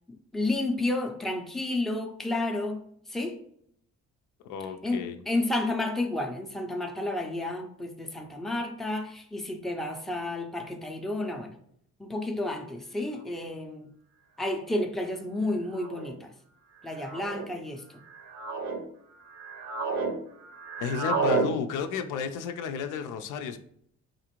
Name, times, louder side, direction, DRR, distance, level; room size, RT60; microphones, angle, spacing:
voice 1, 0.3-3.4 4.8-11.6 12.0-13.9 14.4-16.3 16.8-18.0, left 2 dB, ahead, 0.4 m, -31 dB
voice 2, 4.5-5.2 20.8-23.6, left 6 dB, 85° left, 0.5 m, -32 dB
sound 1, 13.4-13.5 14.5-14.8 15.7-16.1 17.0-17.5 18.1-18.8 19.3-20.1 20.4-21.5, right 4 dB, 65° right, 0.7 m, -31 dB
4.1 x 2.5 x 2.9 m
cardioid pair, 90°, 30 cm